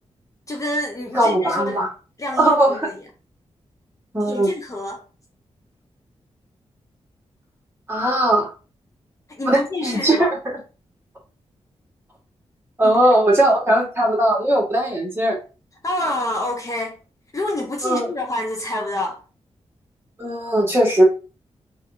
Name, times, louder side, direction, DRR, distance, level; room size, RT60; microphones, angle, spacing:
voice 1, 0.5-1.8 2.2-2.9 4.2-5.0 9.4-10.3 12.8-13.0 13.3-13.6 15.8-17.0 17.3-19.2, left 1 dB, 30° left, 0.6 m, -27 dB
voice 2, 1.1-1.9 2.4-2.9 4.1-4.5 7.9-8.5 9.4-10.6 12.8-15.4 17.8-18.1 20.2-21.0, right 1 dB, 20° right, 1.6 m, -18 dB
4.0 x 2.5 x 2.7 m
wide cardioid pair, 90°, 11 cm